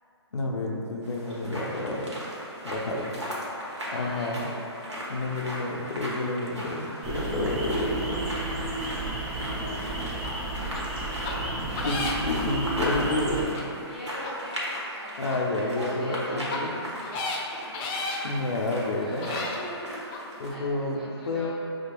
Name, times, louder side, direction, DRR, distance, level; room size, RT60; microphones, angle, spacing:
voice 1, 0.3-2.1 2.6-3.0 3.9-4.4 5.1-8.3 11.8-13.6 15.2-16.7 18.2-19.3 20.4-21.0 21.3-21.5, left 2 dB, 75° left, -1 dB, 0.6 m, -29 dB
sound 1, 1.0-20.5, equal, 85° right, 1.1 m, -37 dB
voice 2, 2.7-3.3 3.7-4.8 9.3-10.2 13.8-14.6 15.0-17.6 18.9-21.5, equal, ahead, -10 dB, 0.9 m, -42 dB
sound 2, 7.0-13.4, right 2 dB, 30° right, 0.6 m, -32 dB
sound 3, 10.2-10.3 10.7-10.8 11.2-11.3 11.8-12.4 12.9-13.0 13.6-13.7 14.2-14.3 14.8-14.9 15.3-15.4 16.0-16.2 16.5-16.6 17.0-17.4 17.7-18.2 18.8-18.9 19.2-19.6 20.1-20.2, left 3 dB, 20° left, 0.3 m, -33 dB
6.1 x 2.3 x 2.9 m, 2.9 s
figure-of-eight pair, 135°, 14 cm